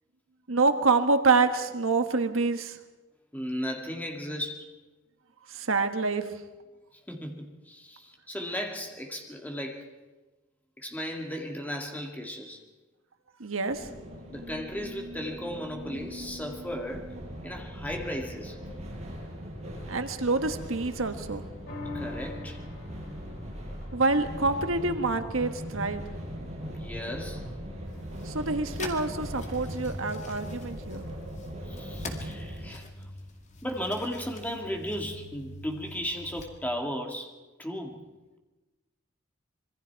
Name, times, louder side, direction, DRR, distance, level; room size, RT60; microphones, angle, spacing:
voice 1, 0.5-2.8 5.5-6.3 13.4-13.9 19.9-21.5 23.9-26.1 28.2-31.1, right 3 dB, 75° right, 8 dB, 1.4 m, -26 dB
voice 2, 3.3-4.7 7.1-9.9 10.8-12.6 14.3-17.2 17.4-18.6 21.9-22.6 26.7-27.5 31.7-33.1 33.6-37.3 37.6-38.1, equal, 10° left, 3 dB, 2.1 m, -35 dB
sound 1, 13.7-32.7, equal, 30° right, 5.9 m, -40 dB
sound 2, 21.7-28.3 28.8-28.9, left 2 dB, 60° left, 3.7 m, -46 dB
sound 3, 27.8-36.4, left 2 dB, 35° left, 2.1 m, -44 dB
26.0 x 22.5 x 4.7 m, 1.1 s
head